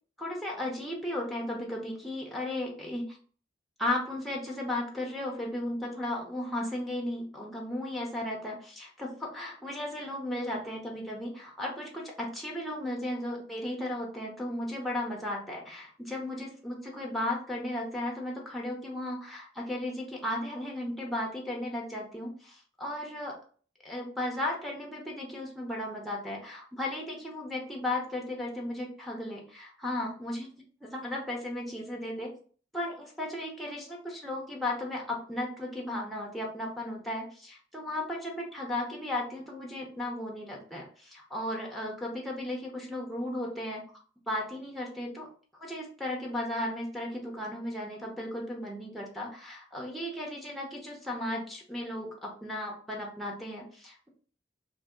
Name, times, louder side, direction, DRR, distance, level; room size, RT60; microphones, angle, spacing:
voice 1, 0.2-3.2 3.8-23.3 23.8-30.5 30.8-32.3 32.7-43.8 44.3-45.3 45.6-54.1, left 1 dB, ahead, -2 dB, 0.8 m, -35 dB
2.7 x 2.7 x 3.6 m, 0.43 s
head